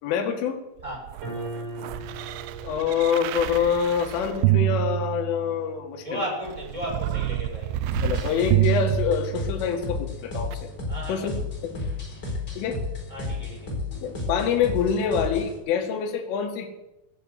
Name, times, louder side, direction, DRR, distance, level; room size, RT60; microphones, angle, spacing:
voice 1, 0.0-0.6 2.6-6.2 8.0-10.7 11.1-11.4 11.6-11.8 12.6-12.8 14.0-16.7, left 7 dB, 75° left, 2 dB, 4.3 m, -26 dB
sound 1, 0.8-5.7 6.4-9.8 10.5-10.6, right 16 dB, 80° right, 2.8 m, -27 dB
sound 2, 1.2-7.7, right 2 dB, 30° right, 5.5 m, -42 dB
voice 2, 6.0-7.7 10.9-11.4 13.1-13.7, equal, 5° right, -2 dB, 6.7 m, -34 dB
sound 3, 7.9-15.6, left 3 dB, 20° left, 4.4 m, -32 dB
15.5 x 10.0 x 8.0 m, 0.92 s
omnidirectional pair, 5.9 m